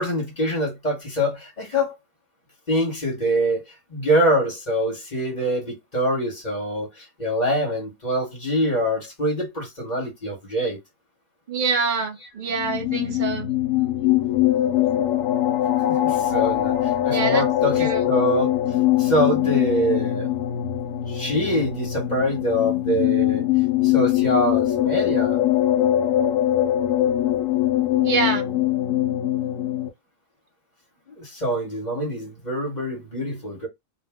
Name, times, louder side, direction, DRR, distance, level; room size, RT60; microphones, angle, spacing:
voice 1, 0.0-1.9 2.7-3.6 3.9-10.8 16.0-18.5 19.0-20.3 21.1-23.5 23.8-25.4 31.1-33.7, equal, 35° left, 1.3 m, -24 dB
voice 2, 11.5-13.5 17.1-17.4 17.8-18.1 28.0-28.5, right 4 dB, 45° right, 0.7 m, -25 dB
sound 1, 12.5-29.9, left 12 dB, 70° left, 0.9 m, -22 dB
2.7 x 2.1 x 3.4 m
omnidirectional pair, 1.5 m